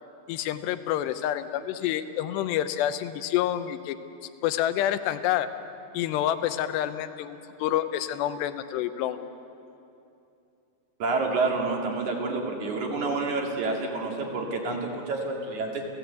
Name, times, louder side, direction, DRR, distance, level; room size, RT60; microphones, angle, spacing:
voice 1, 0.3-4.0 4.4-5.5 5.9-9.2, left 12 dB, 75° left, 11 dB, 2.9 m, -28 dB
voice 2, 11.0-15.8, right 3 dB, 50° right, 1 dB, 3.4 m, -28 dB
29.0 x 16.5 x 8.2 m, 2.7 s
omnidirectional pair, 5.2 m